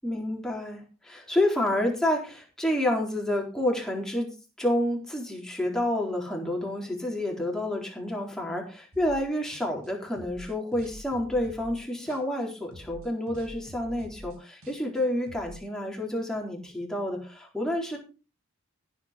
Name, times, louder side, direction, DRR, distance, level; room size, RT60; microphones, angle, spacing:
voice 1, 0.0-18.0, left 1 dB, 5° left, -1 dB, 4.0 m, -29 dB
sound 1, 8.9-9.3 9.5-12.4 12.7-15.6, equal, 85° right, 4.2 m, -46 dB
15.5 x 8.2 x 5.1 m, 0.33 s
head